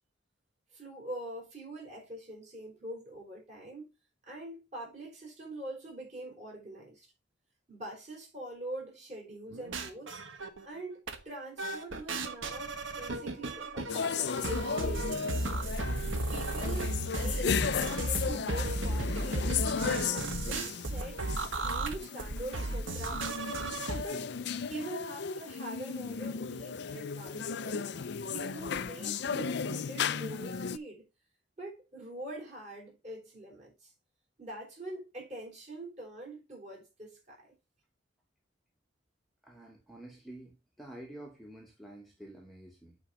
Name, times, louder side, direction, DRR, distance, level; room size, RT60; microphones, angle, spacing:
voice 1, 0.7-3.9 4.3-7.1 7.7-10.2 10.6-15.5 16.3-21.2 21.6-23.4 24.0-24.3 24.7-31.0 31.6-33.9 34.4-37.5, right 1 dB, 35° right, 4.7 m, -44 dB
sound 1, 9.5-10.8 11.1-11.2 11.6-24.0, right 2 dB, 80° right, 1.3 m, -34 dB
sound 2, 13.9-30.8, left 6 dB, 60° left, 0.4 m, -35 dB
voice 2, 39.4-43.0, right 1 dB, ahead, 1.2 m, -49 dB
8.3 x 4.5 x 5.1 m
head